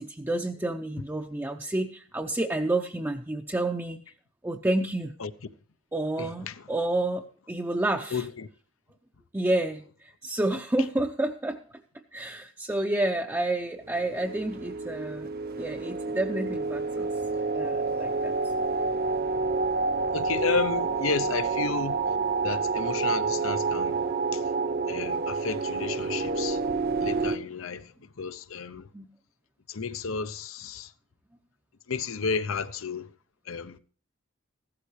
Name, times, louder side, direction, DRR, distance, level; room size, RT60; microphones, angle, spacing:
voice 1, 0.0-4.0 4.4-5.1 5.9-8.2 9.3-11.6 12.1-15.3 15.6-17.1 17.5-18.3 28.9-29.1, right 1 dB, 10° right, 0.6 m, -29 dB
voice 2, 6.2-6.7 8.1-8.5 20.1-24.5 24.9-28.9 29.7-30.9 31.9-33.1 33.5-33.8, left 5 dB, 80° left, 0.7 m, -32 dB
sound 1, 14.0-27.4, right 4 dB, 50° right, 0.8 m, -28 dB
15.0 x 12.5 x 3.2 m
head